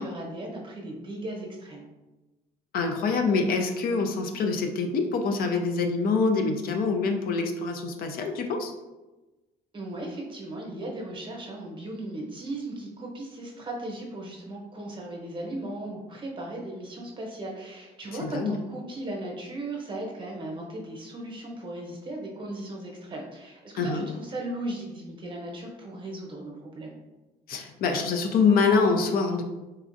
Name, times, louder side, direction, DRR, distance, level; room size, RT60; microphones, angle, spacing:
voice 1, 0.0-1.9 9.7-27.0, right 1 dB, 30° right, -1 dB, 0.8 m, -37 dB
voice 2, 2.7-8.7 18.2-18.6 23.8-24.1 27.5-29.4, left 4 dB, 60° left, 5 dB, 0.5 m, -25 dB
4.1 x 2.4 x 2.5 m, 1.1 s
cardioid pair, 110°, 17 cm